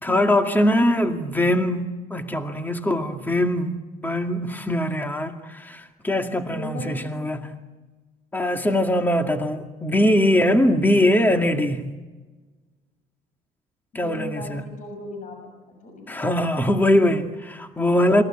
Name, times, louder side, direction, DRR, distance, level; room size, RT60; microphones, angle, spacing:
voice 1, 0.0-7.6 8.3-11.8 13.9-14.6 16.1-18.2, left 1 dB, 10° left, 2.2 m, -22 dB
voice 2, 6.5-7.1 13.9-17.1, left 2 dB, 50° left, 6.2 m, -38 dB
28.0 x 22.0 x 9.0 m
cardioid pair, 110°, 17 cm